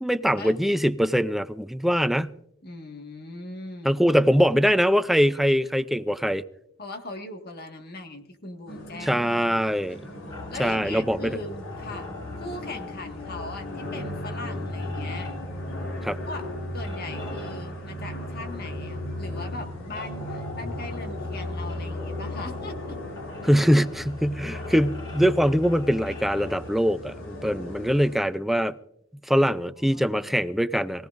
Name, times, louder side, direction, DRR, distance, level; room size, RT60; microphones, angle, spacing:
voice 1, 0.0-2.4 3.8-6.4 9.0-10.0 10.6-11.4 16.0-16.2 23.4-28.7 29.3-31.1, equal, ahead, 0.5 m, -23 dB
voice 2, 2.6-4.0 6.8-9.7 10.5-12.1 12.4-15.3 16.3-16.5 16.7-23.0 29.3-29.5 29.8-30.6, left 2 dB, 50° left, 1.8 m, -39 dB
sound 1, 8.7-28.2, left 2 dB, 85° left, 4.9 m, -37 dB
sound 2, 10.3-26.9, left 1 dB, 25° left, 4.3 m, -40 dB
23.0 x 17.0 x 2.6 m
head